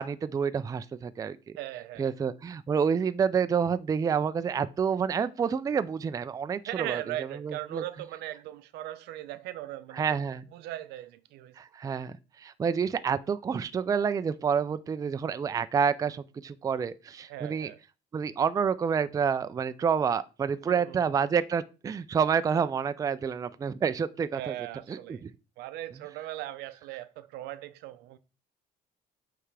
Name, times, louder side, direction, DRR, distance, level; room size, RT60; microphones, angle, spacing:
voice 1, 0.0-1.4 2.0-7.0 7.4-7.8 9.9-10.5 11.6-17.7 18.1-24.5 24.9-25.3, right 6 dB, 20° right, 0.3 m, -28 dB
voice 2, 1.6-2.1 6.7-10.2 10.5-11.6 17.3-17.8 20.7-21.1 24.3-25.2 25.6-28.2, right 14 dB, 85° right, 0.6 m, -39 dB
8.4 x 3.4 x 3.3 m
cardioid pair, 110°, 17 cm